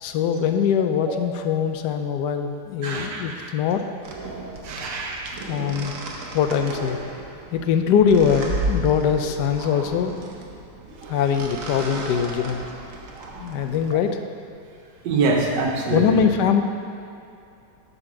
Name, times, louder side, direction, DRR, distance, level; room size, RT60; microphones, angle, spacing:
voice 1, 0.0-3.8 5.5-5.9 6.3-7.0 7.5-10.1 11.1-12.6 13.4-14.2 15.9-16.6, left 7 dB, 80° left, 7 dB, 1.2 m, -22 dB
voice 2, 2.8-3.5 4.6-5.4 15.0-16.2, right 3 dB, 85° right, 0 dB, 1.6 m, -25 dB
sound 1, 4.0-13.9, right 2 dB, 55° right, 1.1 m, -34 dB
8.7 x 4.3 x 5.9 m, 2.5 s
omnidirectional pair, 1.9 m